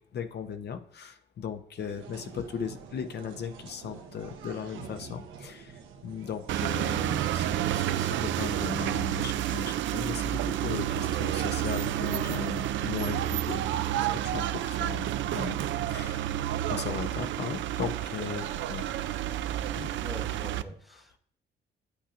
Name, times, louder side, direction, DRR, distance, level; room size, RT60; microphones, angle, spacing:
voice 1, 0.1-13.7 13.9-16.3 16.7-18.8 19.8-19.9, left 7 dB, 55° left, 8 dB, 0.8 m, -37 dB
sound 1, 1.8-13.2, right 6 dB, 90° right, 1.1 m, -47 dB
sound 2, 6.5-20.6, right 12 dB, 70° right, 0.4 m, -30 dB
voice 2, 20.0-21.2, right 1 dB, ahead, 5 dB, 1.1 m, -44 dB
8.6 x 8.5 x 2.5 m, 0.62 s
cardioid pair, 90°, 20 cm